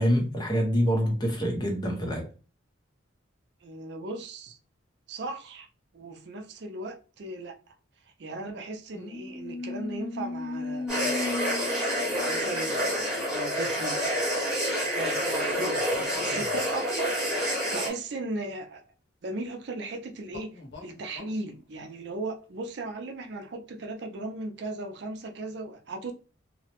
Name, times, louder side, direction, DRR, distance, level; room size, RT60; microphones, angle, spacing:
voice 1, 0.0-2.3, equal, 20° left, 0.6 m, -26 dB
voice 2, 3.6-4.6 5.1-5.7 5.9-7.7 8.2-11.6 12.1-14.2 14.5-15.8 16.2-17.1 17.5-18.8 19.2-26.1, right 2 dB, 60° right, 0.4 m, -37 dB
sound 1, 8.9-12.9 13.8-14.0 15.9-16.7 20.3-21.4, left 3 dB, 60° left, 0.7 m, -37 dB
sound 2, 10.9-17.9, equal, 5° right, 1.0 m, -28 dB
2.8 x 2.0 x 2.8 m
head